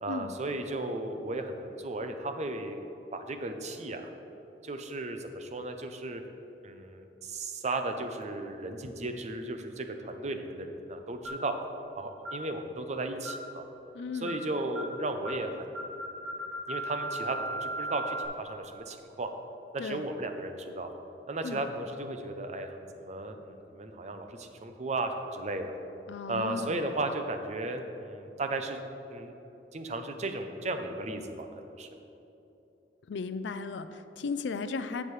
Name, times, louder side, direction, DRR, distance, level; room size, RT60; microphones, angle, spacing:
voice 1, 0.0-2.8 3.1-4.1 4.6-6.2 6.6-11.6 11.9-13.7 14.1-15.7 16.3-16.4 16.7-19.3 19.7-20.9 21.3-25.7 26.3-28.8 29.1-29.3 29.7-31.9, right 2 dB, 40° right, 6 dB, 0.6 m, -35 dB
sound 1, 11.2-11.5 12.2-12.5 13.2-13.5 14.2-14.5 14.7-15.0 15.2-15.5 15.7-18.2, equal, 75° right, 1.8 m, -36 dB
voice 2, 13.9-14.4 19.8-20.0 21.4-21.6 26.1-26.8 33.1-35.0, left 4 dB, 75° left, 11 dB, 0.4 m, -35 dB
11.0 x 7.4 x 3.2 m, 3.0 s
head